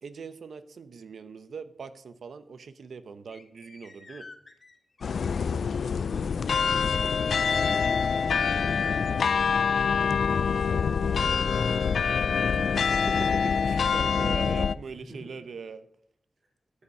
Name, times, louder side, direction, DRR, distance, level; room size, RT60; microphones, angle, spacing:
voice 1, 0.0-4.3 13.1-15.9, right 5 dB, 80° right, 11 dB, 0.9 m, -41 dB
sound 1, 3.3-8.9, left 3 dB, 40° left, 1.8 m, -53 dB
sound 2, 5.0-14.7, left 6 dB, 80° left, 0.4 m, -25 dB
voice 2, 6.1-7.0 7.3-9.5 10.4-13.3 14.1-14.4 15.1-15.3 16.4-16.5, right 1 dB, 45° right, -1 dB, 4.8 m, -47 dB
13.5 x 9.8 x 5.5 m, 0.68 s
wide cardioid pair, 135°, 0 cm